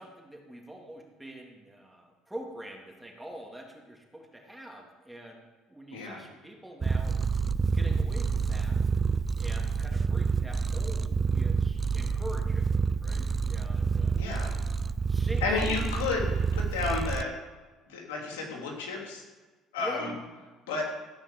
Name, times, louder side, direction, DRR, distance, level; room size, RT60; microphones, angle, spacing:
voice 1, 0.0-7.2 7.7-8.8 9.4-12.7 13.0-14.2 15.1-15.7 19.8-20.1, right 1 dB, 5° right, 0 dB, 3.1 m, -44 dB
Purr, 6.8-17.2, right 5 dB, 30° right, 0.5 m, -28 dB
voice 2, 14.2-14.5 15.4-17.4 17.9-19.2 19.7-20.1 20.7-20.8, left 4 dB, 85° left, 0 dB, 3.1 m, -32 dB
16.0 x 5.7 x 7.6 m, 1.3 s
supercardioid pair, 75°, 0 cm